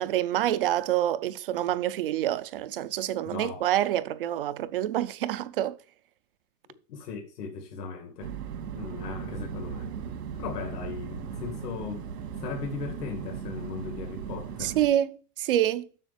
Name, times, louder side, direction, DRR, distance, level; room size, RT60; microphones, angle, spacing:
voice 1, 0.0-5.8 14.6-15.9, right 12 dB, 40° right, 0.4 m, -27 dB
voice 2, 3.2-3.6 6.9-8.3 8.7-9.9 10.4-12.1 12.4-14.8, left 5 dB, 85° left, 2.4 m, -37 dB
sound 1, 8.2-14.9, right 7 dB, 85° right, 2.4 m, -37 dB
7.3 x 6.4 x 7.2 m
supercardioid pair, 170°, 46 cm